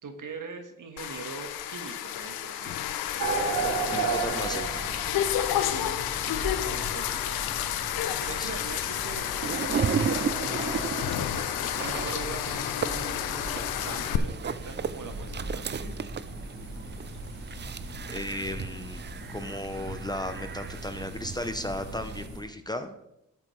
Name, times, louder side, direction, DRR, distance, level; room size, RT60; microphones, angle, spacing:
voice 1, 0.0-2.7 3.6-4.7 5.7-7.4 8.2-9.3 9.8-10.9 11.8-13.2 13.8-16.0, right 4 dB, 55° right, 5 dB, 1.6 m, -41 dB
sound 1, 1.0-14.2, left 11 dB, 80° left, 0.7 m, -31 dB
sound 2, 3.2-22.4, right 3 dB, 75° right, 3.0 m, -37 dB
voice 2, 3.9-4.7 8.3-8.5 18.1-19.0 19.3-23.0, left 1 dB, 10° left, 8 dB, 0.8 m, -35 dB
sound 3, 9.4-22.3, right 7 dB, 30° right, 0.5 m, -35 dB
12.0 x 7.4 x 3.3 m, 0.84 s
supercardioid pair, 50°, 36 cm